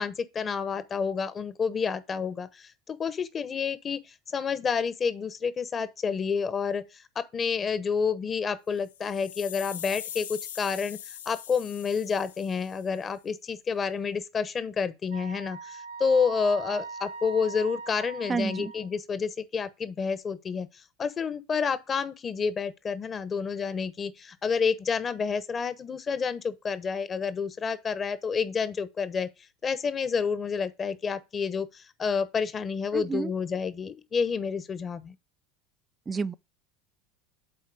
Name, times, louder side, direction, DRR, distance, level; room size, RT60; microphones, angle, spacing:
voice 1, 0.0-29.3 29.6-35.1, left 5 dB, 30° left, 0.9 m, -29 dB
sound 1, 8.8-13.0, left 10 dB, 75° left, 0.4 m, -42 dB
Wind instrument woodwind instrument, 15.1-19.0, right 4 dB, 75° right, 0.9 m, -41 dB
voice 2, 18.3-18.7 32.9-33.3 36.1-36.3, right 5 dB, 25° right, 0.4 m, -29 dB
7.9 x 4.3 x 4.7 m
figure-of-eight pair, 75°, 0 cm